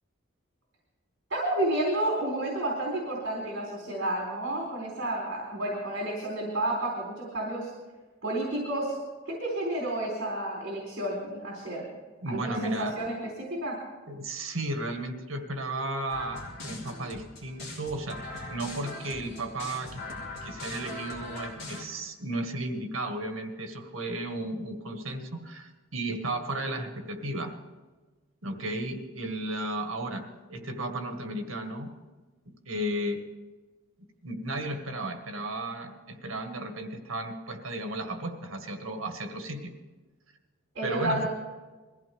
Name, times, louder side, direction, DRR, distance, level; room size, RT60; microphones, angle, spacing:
voice 1, 1.3-7.7 8.2-9.0 9.3-11.9 12.3-13.2 13.5-13.8 40.7-41.3, right 1 dB, 65° right, -3 dB, 3.9 m, -30 dB
voice 2, 12.2-12.9 14.1-20.0 20.4-27.5 28.4-31.9 32.7-33.2 34.2-39.7 40.8-41.3, right 1 dB, 85° right, 5 dB, 1.8 m, -34 dB
sound 1, 16.1-21.8, left 2 dB, 55° left, 4.0 m, -40 dB
21.5 x 15.0 x 3.6 m, 1.3 s
head